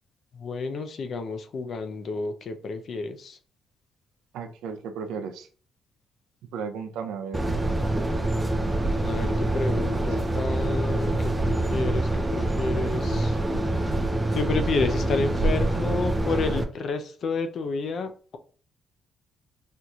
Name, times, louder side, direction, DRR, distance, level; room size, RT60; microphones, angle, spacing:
voice 1, 0.3-3.4 9.0-13.4 14.3-18.4, left 4 dB, 60° left, 8 dB, 0.5 m, -30 dB
voice 2, 4.3-5.5 6.5-7.4, right 6 dB, 90° right, 6 dB, 0.5 m, -34 dB
sound 1, 7.3-16.6, right 2 dB, 15° right, 0.5 m, -25 dB
4.3 x 2.6 x 2.3 m, 0.41 s
cardioid pair, 90°, 0 cm